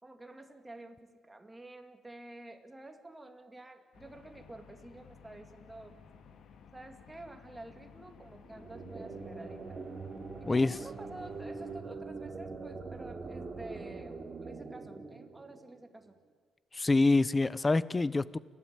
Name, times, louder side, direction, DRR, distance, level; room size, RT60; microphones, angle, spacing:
voice 1, 0.0-6.0 6.7-9.8 10.4-16.2, right 2 dB, 15° right, 2.4 m, -50 dB
sound 1, 3.9-11.8, left 6 dB, 70° left, 1.8 m, -56 dB
sound 2, 8.4-16.1, right 4 dB, 35° right, 2.9 m, -43 dB
voice 2, 16.7-18.4, left 3 dB, 25° left, 0.7 m, -26 dB
29.5 x 12.5 x 8.8 m
cardioid pair, 90°, 0 cm